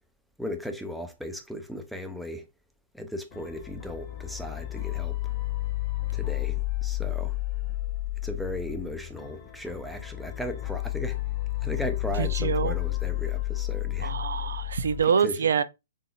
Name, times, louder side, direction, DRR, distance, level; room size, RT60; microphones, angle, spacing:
voice 1, 0.4-2.5 2.9-5.2 6.1-7.4 8.2-11.2 11.6-14.1 15.0-15.5, equal, ahead, 0.6 m, -36 dB
sound 1, 3.3-15.0, left 18 dB, 40° left, 1.1 m, -31 dB
voice 2, 12.2-12.8 14.0-15.6, right 6 dB, 70° right, 0.4 m, -25 dB
3.9 x 3.7 x 2.3 m
hypercardioid pair, 125°, 0 cm